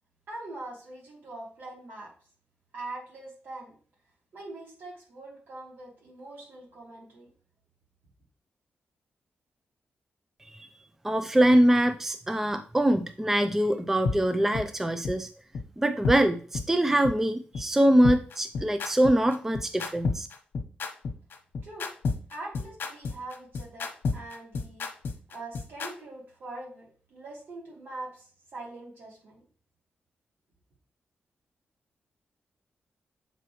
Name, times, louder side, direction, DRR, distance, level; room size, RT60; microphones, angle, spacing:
voice 1, 0.3-2.1 2.7-3.8 4.3-7.3 21.6-21.9 22.3-24.8 25.3-29.5, right 2 dB, 70° right, -3 dB, 3.5 m, -43 dB
voice 2, 11.0-15.3 15.8-20.3, right 1 dB, 10° right, 8 dB, 0.4 m, -23 dB
sound 1, 14.1-14.2 14.5-14.7 15.0-15.1 15.6-15.7 16.0-16.2 16.5-16.7 17.0-17.1 17.6-17.7 18.0-25.9, left 4 dB, 75° left, 1.1 m, -30 dB
7.9 x 4.7 x 3.1 m, 0.42 s
wide cardioid pair, 125°, 4 cm